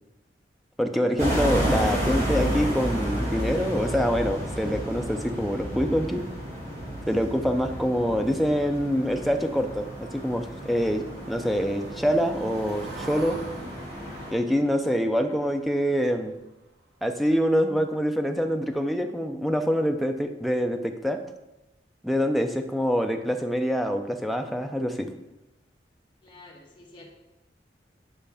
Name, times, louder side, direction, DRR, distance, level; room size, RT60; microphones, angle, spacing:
voice 1, 0.8-6.2 7.1-13.4 14.3-16.3 17.0-21.2 22.0-25.1, equal, ahead, 5 dB, 0.5 m, -25 dB
sound 1, 1.2-14.3, equal, 40° right, 2.2 m, -31 dB
Car passing by / Engine, 9.8-16.6 17.0-17.2 17.5-17.6, right 2 dB, 70° right, 1.2 m, -45 dB
voice 2, 26.2-27.1, left 2 dB, 25° left, -2 dB, 1.5 m, -49 dB
9.9 x 5.4 x 3.4 m, 0.97 s
head